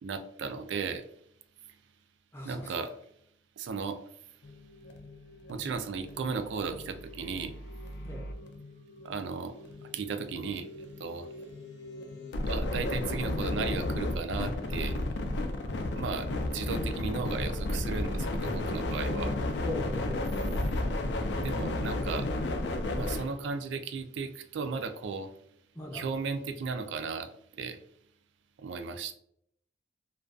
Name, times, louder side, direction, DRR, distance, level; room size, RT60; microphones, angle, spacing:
voice 1, 0.0-1.1 2.4-2.9 3.6-4.0 5.5-7.6 9.0-9.6 9.9-10.7 11.0-11.3 12.5-15.0 15.9-19.4 21.4-22.3 22.9-25.3 25.9-27.3 27.6-27.8 28.6-29.1, right 5 dB, 80° right, 9 dB, 0.3 m, -35 dB
voice 2, 2.3-2.9 8.0-8.3 19.6-20.4 25.7-26.0, left 1 dB, 15° left, -2 dB, 0.5 m, -39 dB
sound 1, 4.4-23.3, left 2 dB, 65° left, 0.3 m, -34 dB
2.5 x 2.2 x 2.3 m, 0.69 s
head